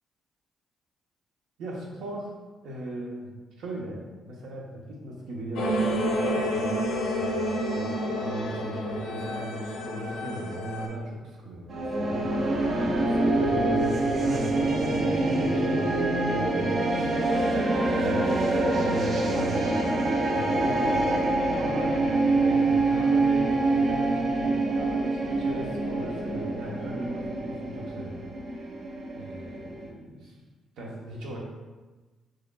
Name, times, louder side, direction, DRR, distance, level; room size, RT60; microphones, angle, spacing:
voice 1, 1.6-2.4 2.6-3.3 3.6-6.8 7.1-15.9 16.2-18.2 18.6-22.0 22.4-28.8 29.1-30.2 30.8-31.4, right 1 dB, 80° right, -2 dB, 0.9 m, -38 dB
sound 1, 5.6-10.9, equal, 85° left, 0.5 m, -29 dB
sound 2, 11.7-29.9, right 2 dB, 55° right, 0.5 m, -25 dB
4.8 x 3.1 x 2.3 m, 1.2 s
cardioid pair, 90°, 0 cm